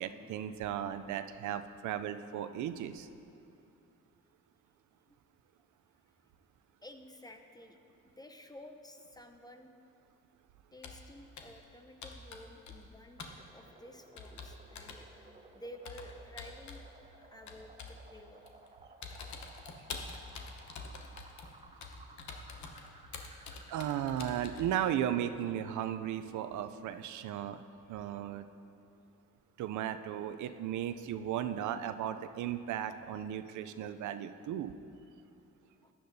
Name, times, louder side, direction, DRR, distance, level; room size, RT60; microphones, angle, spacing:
voice 1, 0.0-3.1 23.7-27.6 27.9-28.5 29.6-34.7, right 10 dB, 75° right, 10 dB, 0.5 m, -36 dB
voice 2, 6.8-7.8 8.0-9.7 10.7-15.2 15.5-16.8 17.1-18.5 35.8-35.9, left 1 dB, 15° left, 5 dB, 0.7 m, -52 dB
Computer keyboard, 10.8-11.1 11.4-11.6 12.0-12.9 13.2-13.4 14.2-15.0 15.8-16.9 17.5-18.0 18.5-18.7 19.0-24.7, left 4 dB, 70° left, 1.0 m, -46 dB
sound 1, 13.2-25.2, right 2 dB, 20° right, 0.8 m, -58 dB
14.5 x 10.0 x 2.7 m, 2.7 s
cardioid pair, 90°, 30 cm